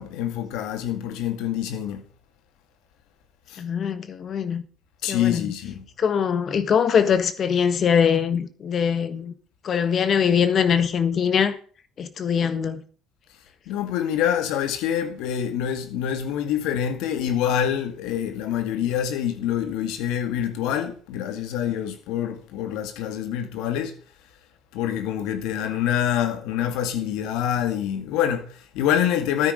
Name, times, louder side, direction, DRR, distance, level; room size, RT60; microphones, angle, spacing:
voice 1, 0.0-2.0 3.5-3.6 5.0-5.9 13.7-23.9 24.7-29.5, left 10 dB, 85° left, 2.1 m, -26 dB
voice 2, 3.6-4.6 5.0-5.5 6.0-9.3 9.6-11.5 12.0-12.8, left 7 dB, 50° left, 1.5 m, -22 dB
12.5 x 9.8 x 5.1 m
cardioid pair, 100°, 0 cm